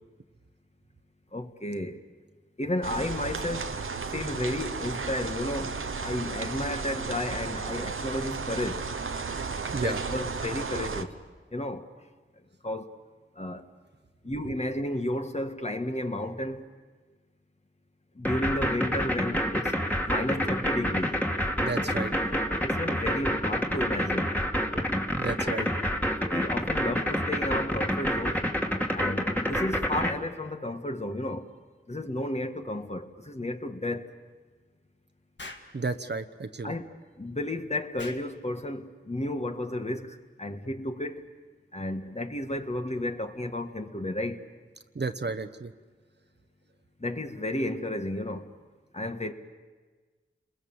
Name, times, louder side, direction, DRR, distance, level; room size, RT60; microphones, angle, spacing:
voice 1, 1.3-2.0 2.6-3.8 4.1-8.9 9.7-11.1 11.5-11.9 12.6-12.9 13.4-13.7 14.2-16.7 18.1-19.7 20.1-21.2 22.6-24.3 25.4-25.7 26.3-28.4 28.9-31.5 31.9-34.1 36.6-36.9 37.2-41.3 41.7-44.4 47.0-48.5 48.9-49.3, left 1 dB, 35° left, 1.7 m, -32 dB
sound 1, 2.8-11.0, right 4 dB, 90° right, 1.0 m, -34 dB
sound 2, 18.2-30.1, equal, 10° left, 2.3 m, -27 dB
voice 2, 21.6-22.1 25.2-25.7 35.7-36.8 44.9-45.7, right 3 dB, 55° right, 1.1 m, -32 dB
Explosion, 35.4-35.7 38.0-38.3, left 2 dB, 65° left, 2.0 m, -42 dB
30.0 x 21.5 x 7.2 m
wide cardioid pair, 50°, 20 cm